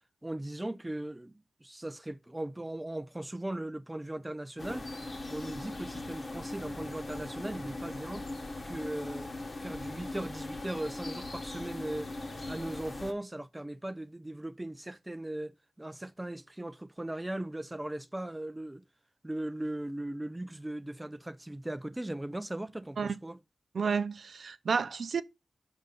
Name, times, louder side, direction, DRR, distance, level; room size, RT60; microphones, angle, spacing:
voice 1, 0.2-4.9 5.3-8.3 8.6-9.3 9.6-12.1 12.5-18.8 19.2-23.4, right 1 dB, 15° right, 0.4 m, -38 dB
sound 1, 4.6-13.1, left 2 dB, 45° left, 1.1 m, -40 dB
voice 2, 23.7-25.2, right 5 dB, 70° right, 0.5 m, -31 dB
5.4 x 5.3 x 5.2 m
wide cardioid pair, 80°, 0 cm